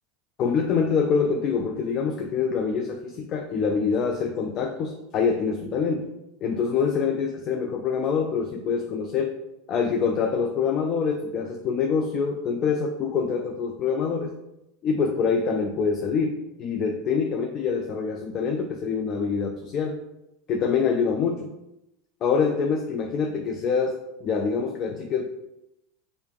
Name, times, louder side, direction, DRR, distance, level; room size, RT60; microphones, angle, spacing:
voice 1, 0.4-6.1 6.4-9.4 9.7-14.3 14.8-20.0 20.5-21.5 22.2-25.2, left 5 dB, 45° left, 3 dB, 0.4 m, -25 dB
3.2 x 2.7 x 3.0 m, 0.88 s
hypercardioid pair, 90°, 0 cm